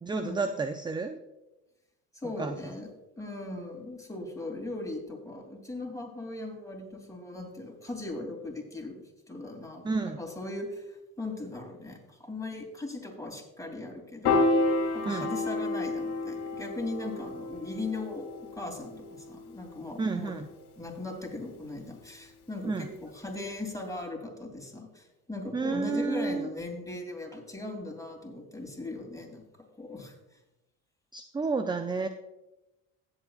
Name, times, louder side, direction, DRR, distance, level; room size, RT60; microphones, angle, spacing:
voice 1, 0.0-1.2 2.4-2.6 9.8-10.2 15.0-15.3 20.0-20.5 22.6-22.9 25.5-26.5 31.1-32.1, right 4 dB, 10° right, 9 dB, 0.4 m, -31 dB
voice 2, 2.1-2.9 3.2-14.4 14.9-20.4 20.8-29.4 29.8-30.1, left 2 dB, 5° left, 1 dB, 2.9 m, -39 dB
Piano, 14.2-20.6, left 2 dB, 65° left, 2.3 m, -30 dB
16.0 x 8.0 x 2.4 m, 1.0 s
supercardioid pair, 80°, 44 cm